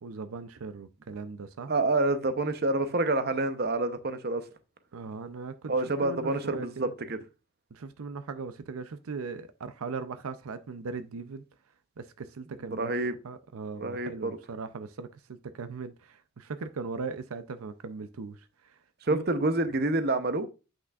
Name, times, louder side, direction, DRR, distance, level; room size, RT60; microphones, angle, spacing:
voice 1, 0.0-1.7 4.9-5.7 6.0-6.9 7.7-11.4 12.0-12.9 13.2-18.8 19.1-19.3, right 4 dB, 85° right, 0.5 m, -39 dB
voice 2, 1.7-4.4 5.7-7.2 12.8-13.1 13.8-14.3 19.1-20.5, right 2 dB, 45° right, 0.7 m, -27 dB
8.1 x 6.0 x 2.4 m
head